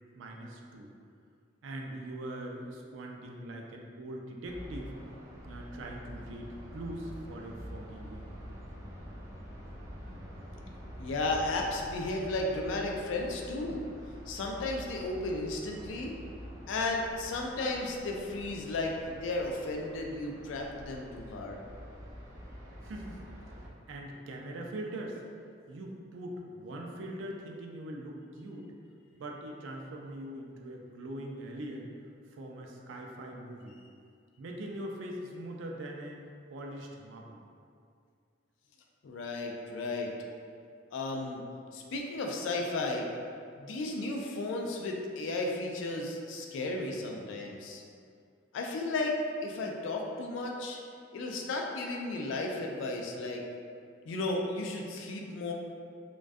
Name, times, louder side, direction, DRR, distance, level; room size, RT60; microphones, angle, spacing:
voice 1, 0.1-0.9 1.6-4.9 5.4-8.4 22.8-23.2 23.5-25.2 25.7-28.7 29.1-31.9 32.3-33.8 34.4-36.2 36.5-37.4, right 1 dB, 80° right, 1 dB, 0.3 m, -42 dB
sound 1, 4.4-23.7, equal, 15° right, 0.4 m, -46 dB
voice 2, 11.0-13.9 14.3-16.2 16.7-21.6 39.0-40.1 40.9-41.4 41.7-43.1 43.6-47.8 48.5-50.8 51.1-53.4 54.1-55.5, left 2 dB, 75° left, 1 dB, 0.3 m, -34 dB
2.3 x 2.2 x 2.5 m, 2.3 s
head